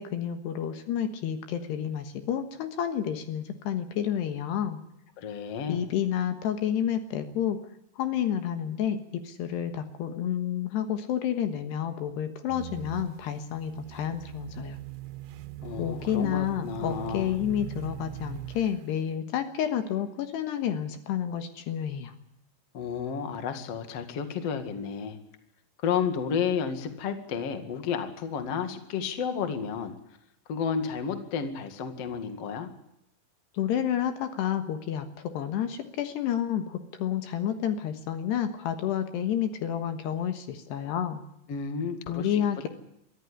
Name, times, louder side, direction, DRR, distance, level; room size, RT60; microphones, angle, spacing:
voice 1, 0.0-4.8 5.7-7.6 8.0-14.8 15.8-22.1 33.5-41.2 42.1-42.7, left 9 dB, 75° left, 8 dB, 3.4 m, -30 dB
voice 2, 5.2-5.9 15.6-17.4 22.7-25.2 25.8-30.0 30.5-32.7 41.5-42.7, left 6 dB, 45° left, 7 dB, 2.4 m, -32 dB
sound 1, 12.5-18.9, right 14 dB, 75° right, 2.7 m, -41 dB
23.5 x 14.0 x 10.0 m, 0.81 s
omnidirectional pair, 5.1 m